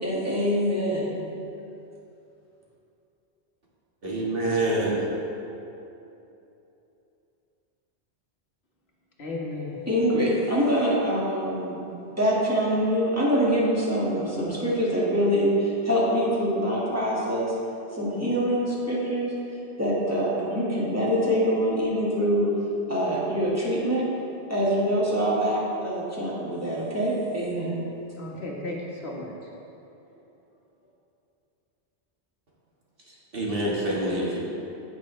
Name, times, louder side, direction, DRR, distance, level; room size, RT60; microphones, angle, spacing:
voice 1, 0.0-1.3 9.9-11.8 12.2-17.5 17.9-19.3 19.8-22.5 22.9-24.1 24.5-27.8, equal, 15° right, -7 dB, 1.9 m, -24 dB
voice 2, 4.0-5.0 33.3-34.4, right 1 dB, 55° right, -5 dB, 1.9 m, -26 dB
voice 3, 9.2-9.9 28.2-29.5, left 2 dB, 65° left, -3 dB, 1.7 m, -34 dB
15.0 x 6.2 x 3.2 m, 2.9 s
omnidirectional pair, 1.1 m